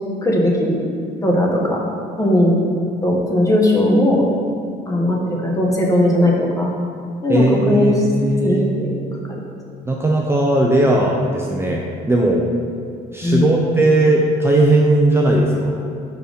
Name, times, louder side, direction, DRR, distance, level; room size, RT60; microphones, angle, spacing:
voice 1, 0.2-0.8 1.2-1.8 2.2-2.6 3.0-4.3 4.9-6.7 7.2-7.9 8.4-8.9 9.3-9.4 13.2-13.6, left 1 dB, 20° left, -2 dB, 1.1 m, -17 dB
voice 2, 7.3-8.7 9.9-11.8 12.1-12.4 13.1-15.8, right 1 dB, 15° right, -2 dB, 0.5 m, -17 dB
5.2 x 4.5 x 5.1 m, 2.4 s
cardioid pair, 110°, 17 cm